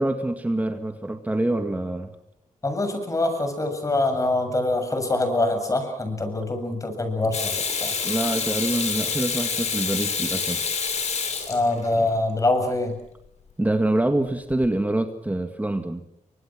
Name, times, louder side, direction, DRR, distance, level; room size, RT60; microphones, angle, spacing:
voice 1, 0.0-2.1 8.0-10.6 13.6-16.0, right 1 dB, 10° right, 6 dB, 1.9 m, -25 dB
voice 2, 2.6-8.0 11.5-13.0, left 2 dB, 25° left, 7 dB, 7.3 m, -24 dB
Water tap faucet / Sink (filling or washing), 7.3-12.1 14.5-14.7, left 5 dB, 55° left, 6.4 m, -27 dB
30.0 x 25.0 x 6.2 m, 0.79 s
wide cardioid pair, 135°, 13 cm